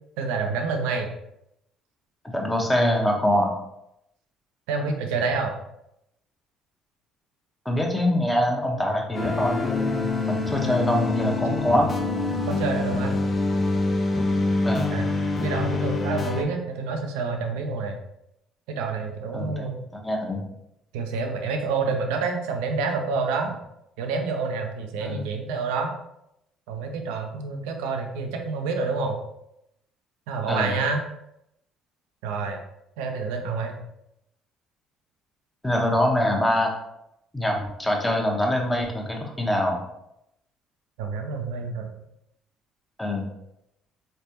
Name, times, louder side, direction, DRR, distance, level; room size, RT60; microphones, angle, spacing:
voice 1, 0.2-1.1 4.7-5.5 10.5-10.8 11.2-11.6 12.5-13.2 14.9-15.1 15.4-18.0 18.7-19.8 20.9-23.6 24.0-25.9 26.7-29.2 30.3-31.0 32.2-32.6 33.0-33.8 41.0-41.9, right 4 dB, 70° right, 4 dB, 0.6 m, -28 dB
voice 2, 2.3-3.5 7.6-11.9 14.6-15.0 19.3-19.7 19.9-20.5 25.0-25.2 30.5-30.7 35.6-36.7 37.3-39.8 43.0-43.3, left 1 dB, 10° left, 0 dB, 1.1 m, -24 dB
sound 1, 9.1-16.4, left 3 dB, 40° left, 0.6 m, -25 dB
4.0 x 3.3 x 2.9 m, 0.82 s
hypercardioid pair, 55°, 0 cm